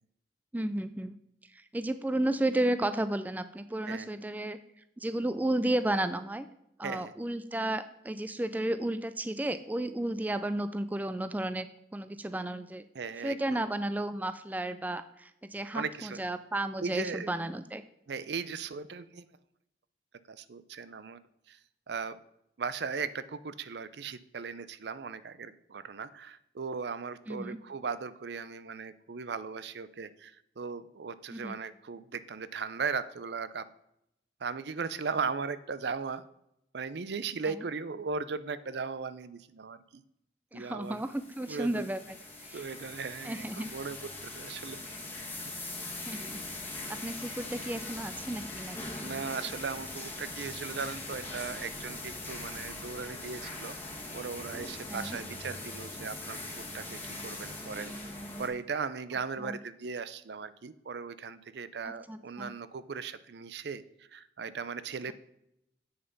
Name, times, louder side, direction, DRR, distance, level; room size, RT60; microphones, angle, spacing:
voice 1, 0.5-1.1 1.5-4.6 5.0-6.5 6.8-11.7 11.9-12.8 13.2-17.8 27.3-27.6 31.3-31.6 40.5-42.2 42.4-42.6 43.2-43.7 46.1-46.4 46.7-48.8 54.9-55.2 59.4-59.6 62.1-62.5, right 1 dB, 10° right, 11 dB, 0.3 m, -33 dB
voice 2, 12.9-13.7 15.7-16.2 16.8-17.3 18.1-19.3 20.3-21.2 21.5-21.6 21.9-22.2 22.6-33.7 34.4-36.2 36.7-40.0 40.5-41.0 41.5-41.9 42.5-44.0 44.2-44.8 49.0-53.8 54.1-57.9 58.4-63.8 64.1-65.1, right 5 dB, 70° right, 15 dB, 0.5 m, -37 dB
sound 1, 40.9-58.5, left 2 dB, 10° left, 1.6 m, -41 dB
8.1 x 6.7 x 5.3 m, 0.80 s
head